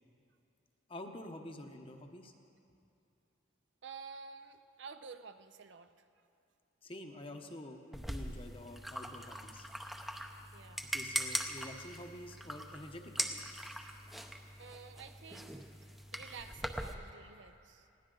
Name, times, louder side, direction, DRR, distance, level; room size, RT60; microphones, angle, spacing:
voice 1, 0.9-2.3 6.8-9.7 10.9-13.5, left 1 dB, 30° left, 4 dB, 0.9 m, -48 dB
voice 2, 3.8-5.9 10.5-10.9 14.6-15.7 16.1-17.9, right 5 dB, 65° right, 9 dB, 0.6 m, -50 dB
sound 1, 7.9-16.9, equal, ahead, 0.7 m, -41 dB
20.0 x 17.5 x 3.9 m, 2.6 s
head